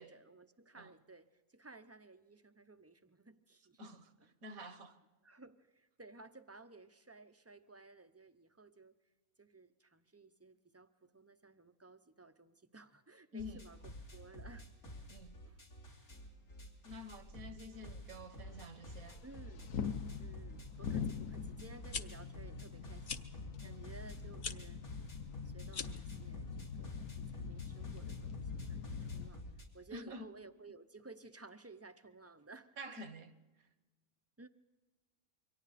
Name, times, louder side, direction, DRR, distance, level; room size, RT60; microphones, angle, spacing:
voice 1, 0.0-3.8 5.2-8.9 9.4-13.8 14.1-14.7 15.4-15.6 19.2-19.7 20.2-23.3 23.6-24.8 25.4-26.5 26.8-29.4 29.7-32.8 34.4-34.5, right 3 dB, 25° right, 0.3 m, -57 dB
voice 2, 3.8-5.0 13.3-13.6 15.1-15.4 16.8-19.2 23.6-23.8 29.9-30.3 32.8-33.3, left 1 dB, 80° right, 1.7 m, -49 dB
sound 1, 13.4-29.6, equal, 90° left, 4.0 m, -51 dB
sound 2, 18.4-29.3, left 7 dB, 70° left, 1.2 m, -44 dB
sound 3, 21.7-22.0 23.0-23.2 24.4-24.6 25.7-26.1, left 6 dB, 45° left, 0.8 m, -41 dB
27.5 x 23.5 x 4.2 m
omnidirectional pair, 1.5 m